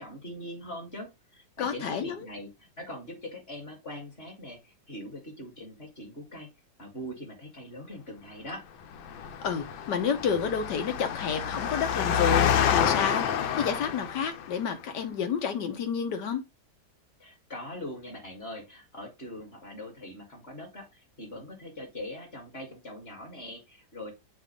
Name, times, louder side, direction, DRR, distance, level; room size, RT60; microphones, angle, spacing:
voice 1, 0.0-6.5 6.8-8.7 17.2-24.1, left 1 dB, 35° left, 1.9 m, -42 dB
voice 2, 1.6-2.3 9.4-16.4, left 7 dB, 65° left, 1.5 m, -30 dB
Engine, 8.9-14.6, left 9 dB, 90° left, 1.5 m, -28 dB
7.2 x 2.5 x 5.2 m
omnidirectional pair, 2.1 m